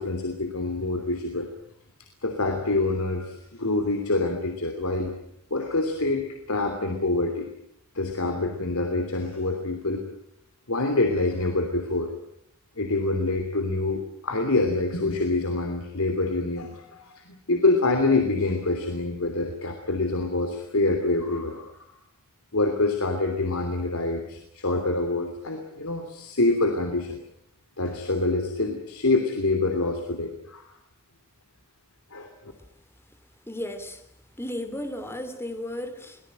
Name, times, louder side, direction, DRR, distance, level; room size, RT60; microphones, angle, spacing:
voice 1, 0.0-1.5 2.2-5.1 5.5-7.5 7.9-10.0 10.7-12.1 12.8-17.1 17.5-21.7 22.5-27.2 27.8-30.6 32.1-32.3, left 2 dB, 70° left, 4 dB, 3.1 m, -26 dB
voice 2, 33.5-34.0 34.4-36.2, left 1 dB, 10° left, 8 dB, 3.1 m, -34 dB
24.0 x 19.0 x 9.2 m, 0.74 s
head